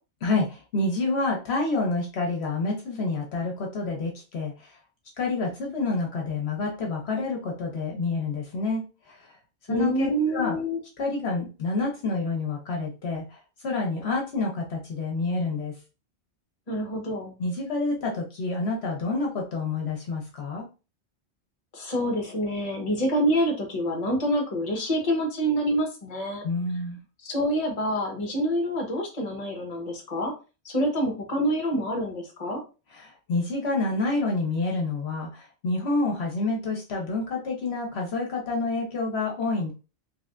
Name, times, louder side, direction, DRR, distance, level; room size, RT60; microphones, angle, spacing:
voice 1, 0.2-4.7 5.2-9.3 9.7-10.6 11.0-15.7 17.4-20.6 26.4-27.0 32.9-39.7, left 3 dB, 65° left, 0 dB, 1.0 m, -28 dB
voice 2, 9.7-10.8 16.7-17.3 21.7-26.4 27.2-30.3 30.6-32.6, equal, 35° left, 1 dB, 1.0 m, -27 dB
3.2 x 3.2 x 2.5 m, 0.32 s
omnidirectional pair, 1.2 m